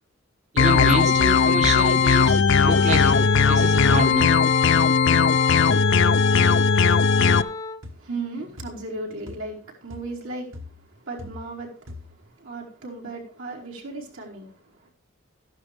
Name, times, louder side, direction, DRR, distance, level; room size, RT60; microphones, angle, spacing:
voice 1, 0.5-3.1 3.5-4.3, right 2 dB, 35° right, 6 dB, 0.8 m, -27 dB
sound 1, 0.6-7.4, left 5 dB, 60° left, 0.6 m, -18 dB
Wind instrument woodwind instrument, 2.6-7.8, left 3 dB, 20° left, 0.6 m, -33 dB
sound 2, 6.9-7.1 7.8-8.1 8.6-8.9 9.3-9.6 9.9-10.2 10.5-11.6 11.9-12.3, left 2 dB, 65° right, 1.8 m, -42 dB
voice 2, 7.8-14.9, right 2 dB, 85° right, -3 dB, 5.0 m, -36 dB
14.0 x 11.5 x 3.5 m, 0.41 s
head